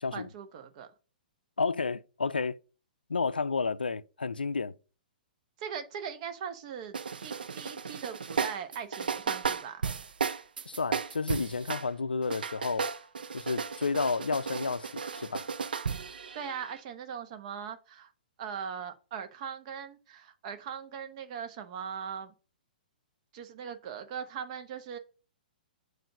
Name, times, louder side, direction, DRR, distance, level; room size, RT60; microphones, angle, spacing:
voice 1, 0.1-0.9 5.6-7.0 7.2-9.8 16.3-18.1 18.4-22.3 23.3-25.0, right 7 dB, 45° right, 1.0 m, -40 dB
voice 2, 1.6-2.6 3.1-4.8 10.7-12.9 13.3-15.5, left 4 dB, 85° left, 0.4 m, -31 dB
sound 1, 6.9-11.9 12.2-16.8, right 5 dB, 75° right, 0.4 m, -34 dB
7.6 x 2.6 x 5.8 m
figure-of-eight pair, 120°, 5 cm